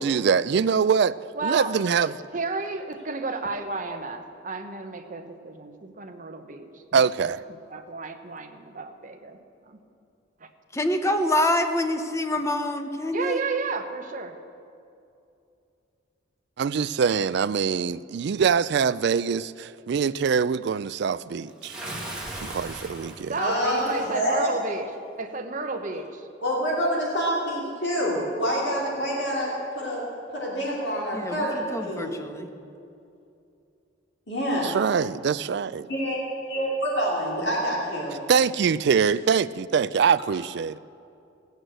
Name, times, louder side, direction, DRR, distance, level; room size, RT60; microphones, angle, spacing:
voice 1, 0.0-1.2 1.4-2.1 6.9-7.4 16.6-21.8 22.4-23.3 34.6-35.9 38.3-40.8, right 6 dB, 55° right, 0.3 m, -23 dB
voice 2, 1.3-1.8 2.1-7.0 7.7-9.8 10.4-10.5 13.1-14.3 23.3-26.3, right 3 dB, 40° right, 1.0 m, -32 dB
voice 3, 10.7-13.4 31.1-32.5, left 1 dB, 15° left, 0.8 m, -26 dB
Bathtub (filling or washing) / Splash splatter, 21.6-24.1, right 1 dB, 5° right, 1.8 m, -38 dB
voice 4, 23.4-24.5 26.4-30.0 30.3-32.2 34.3-34.8 35.9-36.2 36.5-38.2, equal, 60° left, 2.9 m, -27 dB
17.0 x 8.1 x 7.8 m
head